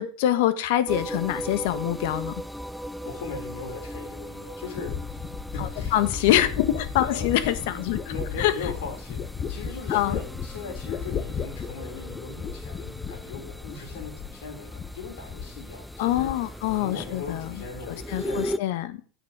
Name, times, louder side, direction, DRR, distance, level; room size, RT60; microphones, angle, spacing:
voice 1, 0.0-2.3 5.6-8.0 8.4-8.7 9.9-10.2 16.0-17.5 17.9-19.0, left 13 dB, 65° left, 12 dB, 1.3 m, -25 dB
sound 1, 0.9-18.6, equal, ahead, 0.4 m, -38 dB
voice 2, 3.0-5.3 5.5-6.3 7.0-9.2 9.5-16.3 16.7-18.7, left 5 dB, 85° left, 1 dB, 5.0 m, -39 dB
sound 2, 4.0-4.1 4.8-14.5 14.7-15.6 15.9-16.7 17.0-17.5, left 7 dB, 25° left, 0.9 m, -35 dB
9.4 x 9.2 x 4.8 m, 0.40 s
supercardioid pair, 155°, 0 cm